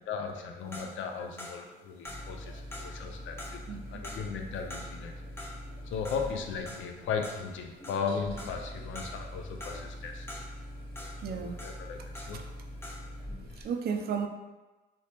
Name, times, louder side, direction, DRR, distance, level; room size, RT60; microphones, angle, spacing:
voice 1, 0.1-5.3 5.8-10.3 11.3-12.5, left 5 dB, 75° left, 4 dB, 0.5 m, -37 dB
sound 1, 0.7-12.5 12.8-13.2, left 1 dB, 10° left, 0.6 m, -46 dB
sound 2, 2.0-13.7, equal, 30° left, 1.2 m, -44 dB
voice 2, 11.2-11.6 12.3-12.4 13.6-14.3, right 6 dB, 55° right, 5 dB, 0.4 m, -34 dB
3.3 x 2.9 x 2.8 m, 1.2 s
cardioid pair, 90°, 20 cm